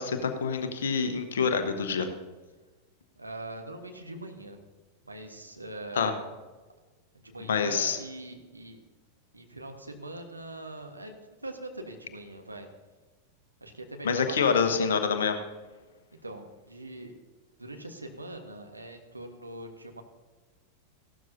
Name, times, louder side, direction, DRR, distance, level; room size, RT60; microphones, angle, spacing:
voice 1, 0.0-2.1 5.9-6.1 7.5-8.0 14.0-15.4, left 6 dB, 65° left, 8 dB, 1.1 m, -26 dB
voice 2, 3.2-4.6 5.0-6.3 7.1-8.8 9.3-12.7 13.6-14.5 16.2-17.1 17.6-20.0, right 2 dB, 85° right, 4 dB, 1.3 m, -42 dB
15.5 x 12.5 x 2.7 m, 1.2 s
figure-of-eight pair, 90°, 0 cm